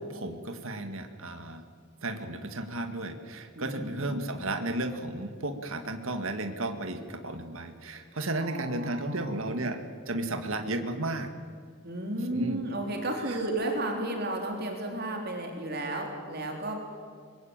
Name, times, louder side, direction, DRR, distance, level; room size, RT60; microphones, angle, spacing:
voice 1, 0.0-1.6 2.0-9.8 10.1-11.3 12.3-12.6 13.3-13.4, right 2 dB, 65° right, 6 dB, 2.0 m, -33 dB
voice 2, 3.5-4.2 8.4-9.4 11.8-16.9, right 1 dB, 45° right, 2 dB, 3.7 m, -33 dB
24.0 x 22.0 x 8.9 m, 2.1 s
head